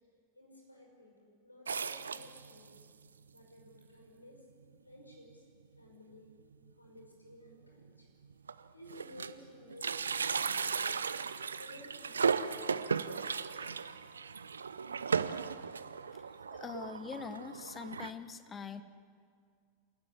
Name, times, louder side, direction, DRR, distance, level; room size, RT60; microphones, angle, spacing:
voice 1, 0.3-2.8 3.3-4.5 4.8-5.4 5.8-6.3 6.8-8.1 8.7-11.1 11.5-13.7, left 1 dB, 85° left, 1 dB, 5.6 m, -55 dB
sound 1, 1.7-2.8 3.4-3.5 3.7-3.8 4.6-4.7 5.1-5.3 5.6-5.7 7.0-7.1 7.8-7.9 8.2-9.4 9.7-18.1, right 5 dB, 70° right, 0.7 m, -36 dB
voice 2, 16.5-18.8, left 6 dB, 20° left, 12 dB, 1.3 m, -43 dB
28.0 x 14.0 x 10.0 m, 2.2 s
figure-of-eight pair, 90°, 0 cm